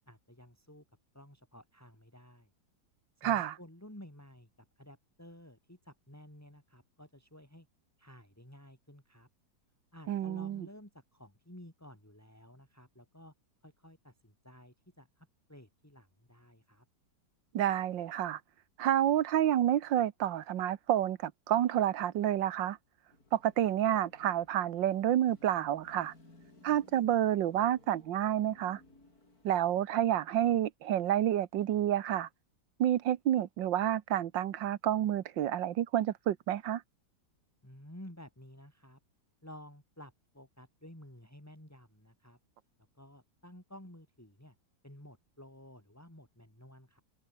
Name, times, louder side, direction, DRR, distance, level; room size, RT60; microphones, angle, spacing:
voice 1, 0.1-0.8 1.1-2.5 3.2-4.5 4.8-7.7 8.0-9.3 9.9-13.3 13.6-16.9 37.6-39.0 39.4-42.4 42.9-44.6 44.8-47.0, left 1 dB, 10° left, 4.5 m, -53 dB
voice 2, 3.2-3.5 10.1-10.7 17.5-18.4 18.8-22.8 23.3-26.1 26.6-28.8 29.4-32.3 32.8-36.8, right 11 dB, 90° right, 1.7 m, -29 dB
Car passing by / Traffic noise roadway noise / Engine, 23.1-30.4, left 2 dB, 55° left, 7.0 m, -61 dB
omnidirectional pair, 1.9 m